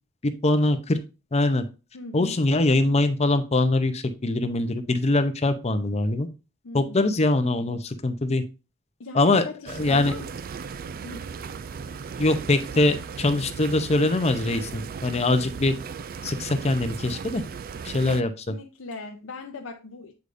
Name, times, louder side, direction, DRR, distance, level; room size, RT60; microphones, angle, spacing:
voice 1, 0.2-1.0 1.3-1.6 2.1-6.3 6.7-8.4 9.1-9.4 9.8-10.1 12.2-15.7 16.2-17.4 17.8-18.3, left 2 dB, 30° left, 0.7 m, -23 dB
voice 2, 1.9-2.4 6.6-7.1 9.0-10.3 11.0-11.3 18.0-18.1 18.5-20.1, left 3 dB, 80° left, 0.7 m, -39 dB
sound 1, 9.7-18.2, right 6 dB, 45° right, 0.4 m, -36 dB
8.1 x 4.9 x 2.6 m
head